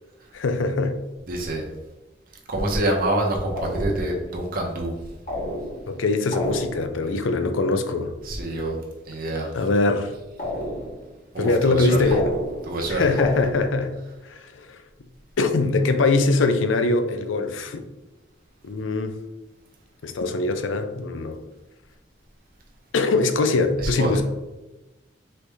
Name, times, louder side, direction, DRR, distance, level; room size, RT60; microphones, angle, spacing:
voice 1, 0.3-0.9 5.9-8.1 9.5-10.1 11.4-12.3 12.9-13.9 14.2-14.8 15.4-17.8 18.6-19.1 20.0-21.4 22.9-24.2, left 3 dB, 85° left, 7 dB, 0.5 m, -22 dB
voice 2, 1.3-1.6 2.5-4.9 8.3-8.7 9.1-9.5 11.3-12.0 12.7-13.0 24.0-24.2, right 1 dB, 50° right, 0 dB, 0.8 m, -26 dB
sound 1, 3.6-4.3 5.3-6.0 6.3-7.1 10.4-11.1 12.1-12.8 13.2-13.9, equal, 45° left, 1.3 m, -31 dB
4.1 x 3.3 x 3.4 m, 1.1 s
head